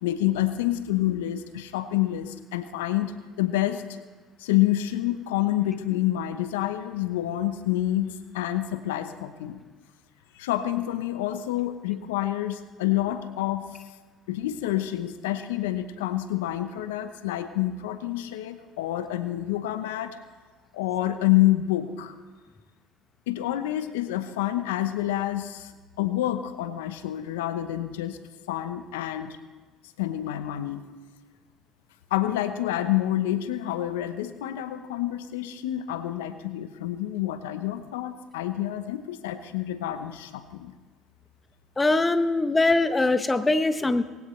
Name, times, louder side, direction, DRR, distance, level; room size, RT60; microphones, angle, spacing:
voice 1, 0.0-4.0 4.4-9.6 10.3-13.6 14.3-20.2 20.7-22.1 23.3-25.7 26.0-28.2 28.5-29.4 30.0-30.8 32.1-40.7, left 14 dB, 85° left, 11 dB, 0.9 m, -28 dB
voice 2, 41.8-44.0, left 2 dB, 15° left, 11 dB, 1.0 m, -22 dB
20.0 x 16.5 x 3.2 m, 1.4 s
hypercardioid pair, 75°, 0 cm